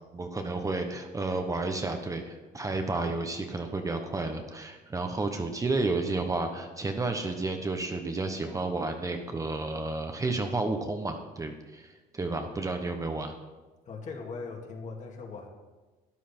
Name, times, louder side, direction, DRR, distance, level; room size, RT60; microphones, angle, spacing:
voice 1, 0.1-13.3, right 3 dB, 20° right, 5 dB, 1.0 m, -31 dB
voice 2, 13.9-15.5, left 4 dB, 50° left, 1 dB, 2.3 m, -39 dB
12.5 x 10.0 x 4.4 m, 1.2 s
cardioid pair, 120°, 17 cm